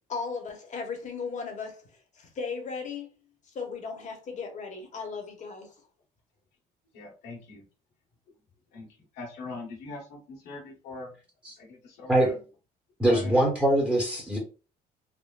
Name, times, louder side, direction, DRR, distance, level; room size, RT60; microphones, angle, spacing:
voice 1, 0.1-3.1 3.5-5.7, left 5 dB, 45° left, 1.0 m, -36 dB
voice 2, 6.9-7.6 8.7-8.9 9.1-11.1 11.6-12.3 13.1-13.3, left 3 dB, 85° left, 1.5 m, -41 dB
voice 3, 13.0-14.4, right 1 dB, 5° right, 1.0 m, -23 dB
3.6 x 2.1 x 2.4 m
cardioid pair, 110°, 17 cm